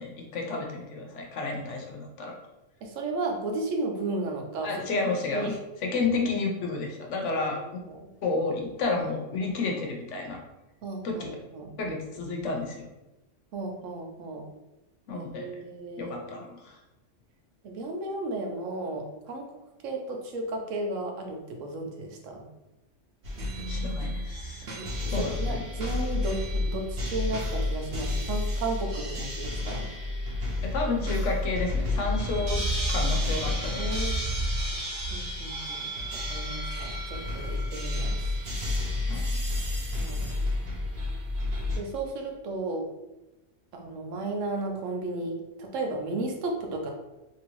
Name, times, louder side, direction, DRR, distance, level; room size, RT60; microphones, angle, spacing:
voice 1, 0.0-2.3 4.6-5.5 5.8-7.6 8.2-10.4 11.0-11.3 11.8-12.9 15.1-15.5 16.0-16.8 23.7-24.7 25.1-25.6 30.6-32.6 32.9-34.1 39.1-39.4, left 3 dB, 75° left, 1 dB, 1.0 m, -31 dB
voice 2, 2.8-5.0 5.3-5.6 7.3-7.6 7.9-8.1 10.8-11.2 11.5-11.7 13.5-14.5 15.1-16.2 17.6-19.5 19.8-22.5 24.8-24.9 25.2-29.9 33.8-34.2 35.1-38.3 39.9-40.3 41.7-42.9 43.7-46.9, right 2 dB, 85° right, 2 dB, 1.0 m, -34 dB
sound 1, 23.2-41.8, left 1 dB, 65° right, 0.9 m, -30 dB
3.0 x 2.6 x 2.9 m, 0.98 s
omnidirectional pair, 1.3 m